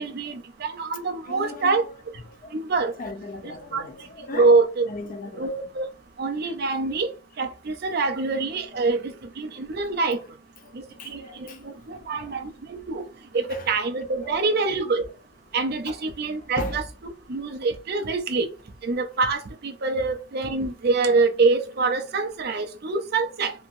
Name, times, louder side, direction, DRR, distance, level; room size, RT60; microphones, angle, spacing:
voice 1, 0.0-1.8 2.5-2.9 3.7-3.8 4.3-4.9 5.4-5.8 6.2-7.1 7.4-10.2 10.7-10.8 11.1-11.2 11.9-13.0 13.3-15.1 15.5-16.8 17.3-18.5 18.8-19.4 19.6-23.5, right 3 dB, 45° right, 0.4 m, -25 dB
voice 2, 1.2-2.6 3.0-4.6 4.9-5.7 6.4-6.5 8.7-8.9 10.1-10.3 10.6-12.4 13.3-13.8 14.1-14.9 15.9-16.0 16.4-16.9 19.9-20.1, left 2 dB, 40° left, 0.4 m, -39 dB
2.8 x 2.5 x 2.5 m
head